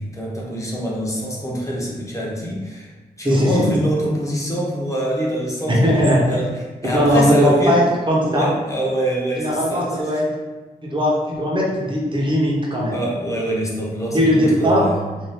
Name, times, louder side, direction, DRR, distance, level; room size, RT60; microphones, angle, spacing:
voice 1, 0.0-2.9 3.2-7.8 8.3-10.2 12.9-15.0, right 1 dB, 20° left, -4 dB, 0.6 m, -25 dB
voice 2, 3.2-3.7 5.8-6.2 6.9-8.5 9.4-10.2 10.8-12.9 14.1-14.9, equal, 30° right, -3 dB, 0.7 m, -18 dB
2.7 x 2.4 x 3.3 m, 1.2 s
wide cardioid pair, 130°, 16 cm